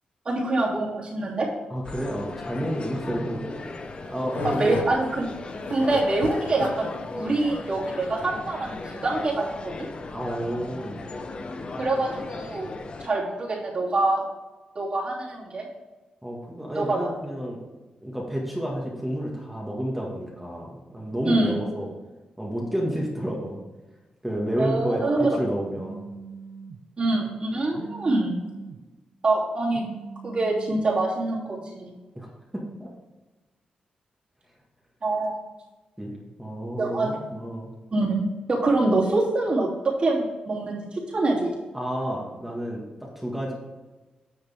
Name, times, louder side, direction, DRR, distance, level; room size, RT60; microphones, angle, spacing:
voice 1, 0.2-1.5 4.4-5.3 5.7-9.7 11.8-12.7 13.0-14.2 14.7-15.6 16.7-17.0 21.2-21.5 24.6-25.3 27.0-28.4 29.2-29.8 30.2-31.9 35.0-35.3 36.8-37.1 37.9-41.5, right 2 dB, 40° right, -4 dB, 3.1 m, -25 dB
voice 2, 1.7-3.6 4.1-4.8 10.1-11.0 16.2-17.6 18.0-21.9 22.4-23.6 24.2-26.1 32.2-32.9 36.0-37.7 41.7-43.5, equal, 5° right, -3 dB, 1.8 m, -30 dB
sound 1, 1.8-13.1, left 3 dB, 40° left, 0.8 m, -37 dB
sound 2, 3.7-8.8, left 5 dB, 85° left, 0.9 m, -36 dB
Telephone, 25.7-26.8 27.7-28.8 29.7-30.7, right 5 dB, 65° right, 0.7 m, -41 dB
10.0 x 6.7 x 3.6 m, 1.2 s
cardioid pair, 110°, 3 cm